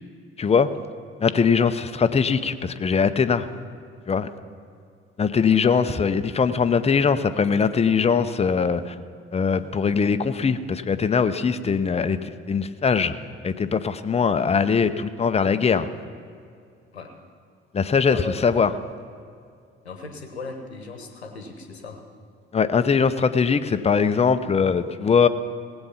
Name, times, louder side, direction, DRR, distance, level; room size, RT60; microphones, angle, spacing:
voice 1, 0.4-0.7 1.2-3.5 4.1-4.3 5.2-8.9 9.3-13.2 13.4-15.9 17.7-18.7 22.5-25.3, left 6 dB, 20° left, 11 dB, 0.7 m, -21 dB
voice 2, 18.1-18.4 19.8-22.0, left 4 dB, 85° left, 5 dB, 1.1 m, -37 dB
18.0 x 8.0 x 5.7 m, 2.3 s
figure-of-eight pair, 50°, 31 cm